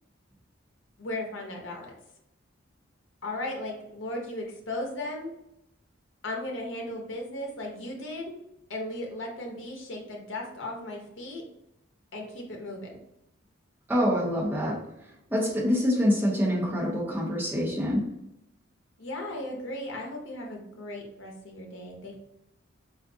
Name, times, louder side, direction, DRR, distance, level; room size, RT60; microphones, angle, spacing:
voice 1, 1.0-1.9 3.2-5.3 6.2-8.3 8.7-11.4 12.1-13.0 19.0-22.2, left 1 dB, 70° left, 1 dB, 0.8 m, -36 dB
voice 2, 13.9-14.7 15.3-18.0, equal, 10° right, -7 dB, 1.1 m, -25 dB
4.3 x 2.5 x 2.6 m, 0.82 s
head